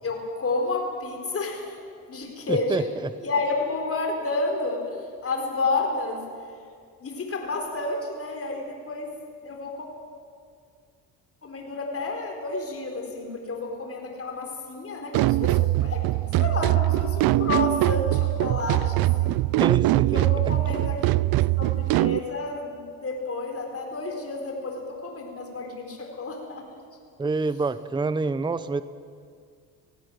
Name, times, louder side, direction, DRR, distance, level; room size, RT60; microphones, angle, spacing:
voice 1, 0.0-1.8 2.1-2.9 3.2-6.2 7.0-9.1 9.4-9.9 11.4-16.0 16.4-19.4 20.1-21.3 21.6-26.8, left 3 dB, 35° left, 2 dB, 4.3 m, -30 dB
voice 2, 2.5-3.2 19.6-20.3 27.2-28.8, right 3 dB, 10° right, 14 dB, 0.7 m, -27 dB
sound 1, 15.1-22.2, right 18 dB, 70° right, 0.5 m, -22 dB
17.5 x 16.5 x 9.3 m, 2.2 s
cardioid pair, 90°, 38 cm